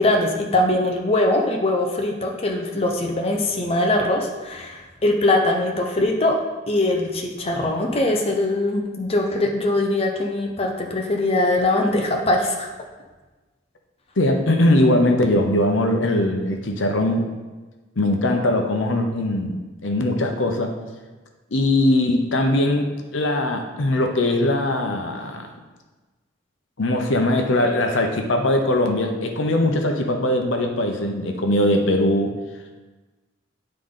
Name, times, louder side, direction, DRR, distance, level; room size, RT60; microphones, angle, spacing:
voice 1, 0.0-6.4 6.7-12.7, left 2 dB, 30° left, 1 dB, 0.7 m, -21 dB
voice 2, 14.2-17.3 18.0-20.7 21.5-25.5 26.8-32.3, left 1 dB, 80° left, 4 dB, 0.8 m, -21 dB
9.7 x 3.8 x 3.8 m, 1.2 s
head